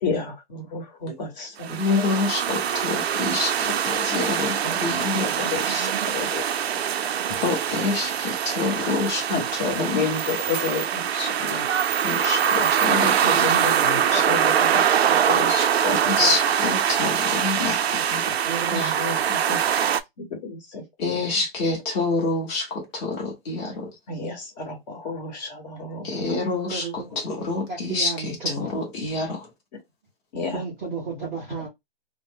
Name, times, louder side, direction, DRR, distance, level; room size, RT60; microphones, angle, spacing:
voice 1, 0.0-2.6 3.7-3.8 4.3-6.7 7.0-7.2 9.3-11.7 12.5-12.8 13.0-16.3 18.7-19.6 20.2-20.8 21.1-21.8 24.1-26.2 30.3-30.6 31.2-31.4, left 4 dB, 45° left, 1.3 m, -32 dB
sound 1, 1.6-20.0, right 8 dB, 90° right, 0.5 m, -23 dB
voice 2, 1.7-5.3 5.7-5.8 7.3-10.1 12.0-13.5 14.1-14.2 16.2-18.3 18.7-18.9 21.0-23.9 26.0-26.9 27.1-28.3 28.6-29.5, left 3 dB, 25° left, 1.0 m, -27 dB
voice 3, 12.8-14.0 16.2-16.3 17.9-19.1 26.7-27.1 27.7-28.7 30.5-31.7, right 3 dB, 10° right, 0.3 m, -33 dB
2.4 x 2.1 x 3.5 m
hypercardioid pair, 145°, 30 cm